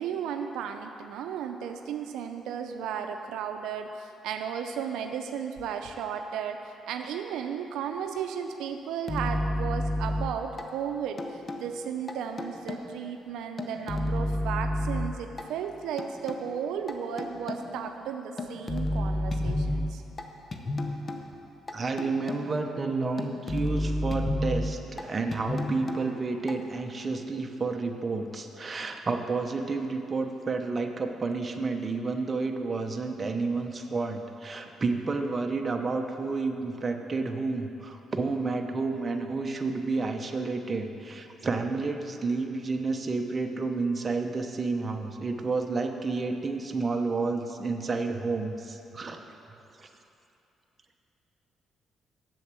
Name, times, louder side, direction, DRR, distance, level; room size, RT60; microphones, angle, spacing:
voice 1, 0.0-6.6 6.9-20.0, right 7 dB, 90° right, 6 dB, 0.5 m, -34 dB
sound 1, 9.1-10.6 11.2-11.7 12.1-13.0 13.6-15.4 16.0-16.4 16.9-17.8 18.4-20.2 20.5-21.2 21.7-22.6 23.2-25.0 25.3-26.0 26.5-26.6, left 1 dB, 35° left, 0.8 m, -31 dB
voice 2, 21.7-49.2 49.8-49.9, right 3 dB, 30° right, 4 dB, 0.8 m, -30 dB
7.8 x 7.1 x 7.5 m, 2.7 s
cardioid pair, 90°, 0 cm